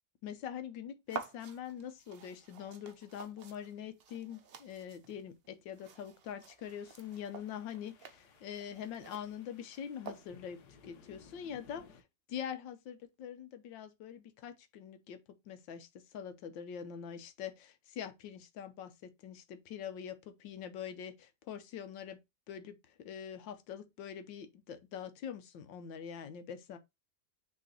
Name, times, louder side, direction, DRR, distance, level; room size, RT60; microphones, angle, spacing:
voice 1, 0.2-12.0 12.3-15.2 15.5-22.2 22.5-26.8, left 8 dB, 90° left, 1.5 m, -44 dB
sound 1, 1.1-10.6, right 6 dB, 60° right, 0.6 m, -50 dB
sound 2, 6.6-12.0, left 5 dB, 65° left, 1.4 m, -60 dB
6.3 x 3.6 x 4.2 m
omnidirectional pair, 2.0 m